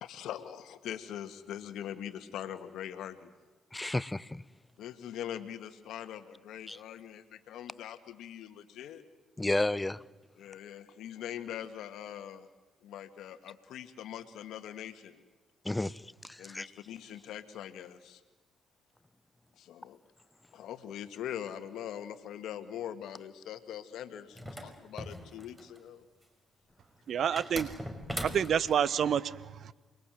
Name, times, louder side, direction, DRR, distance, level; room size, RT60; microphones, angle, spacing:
voice 1, 0.0-3.3 4.8-9.0 10.4-12.5 12.8-15.2 16.4-18.2 19.6-20.0 20.5-26.0 27.3-27.4, left 10 dB, 70° left, 1.8 m, -42 dB
voice 2, 3.7-4.4 6.7-6.8 9.4-10.0 15.6-16.7, left 2 dB, 15° left, 0.9 m, -32 dB
sound 1, 24.4-25.8 27.4-28.8, equal, 10° right, 5.6 m, -40 dB
voice 3, 27.1-27.7 28.2-29.7, right 8 dB, 60° right, 1.0 m, -28 dB
28.0 x 21.5 x 9.3 m
hypercardioid pair, 50°, 0 cm